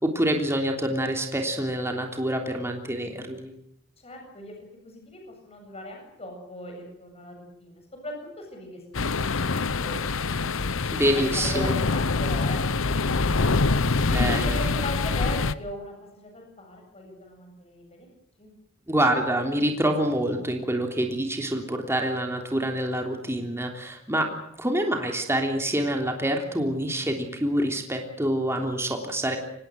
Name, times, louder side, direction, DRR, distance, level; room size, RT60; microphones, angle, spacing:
voice 1, 0.0-3.5 10.9-11.7 14.1-14.6 18.9-24.3 24.6-29.4, right 1 dB, 15° right, 3 dB, 3.3 m, -26 dB
voice 2, 4.0-4.6 4.8-10.6 11.1-13.7 14.3-18.1 18.4-18.5, left 1 dB, 30° left, 2 dB, 7.7 m, -38 dB
sound 1, 8.9-15.5, left 3 dB, 70° left, 0.9 m, -25 dB
25.5 x 20.5 x 7.9 m, 0.71 s
head